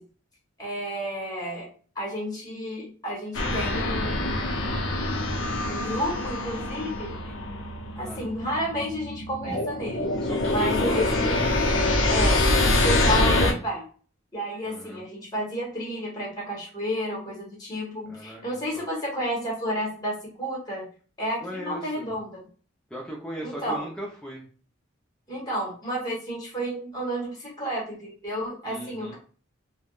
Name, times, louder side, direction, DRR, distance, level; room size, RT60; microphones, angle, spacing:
voice 1, 0.6-4.9 5.6-7.2 8.0-10.2 10.5-11.4 12.1-13.8 14.3-20.8 21.2-22.4 23.4-23.9 25.3-29.2, equal, 20° left, -3 dB, 1.1 m, -31 dB
sound 1, 3.3-13.5, left 2 dB, 65° left, 0.6 m, -25 dB
voice 2, 10.2-11.4 14.6-15.0 18.0-18.9 21.4-22.3 22.9-24.4 28.6-29.2, equal, 5° left, -3 dB, 0.5 m, -37 dB
3.4 x 2.2 x 2.3 m, 0.41 s
head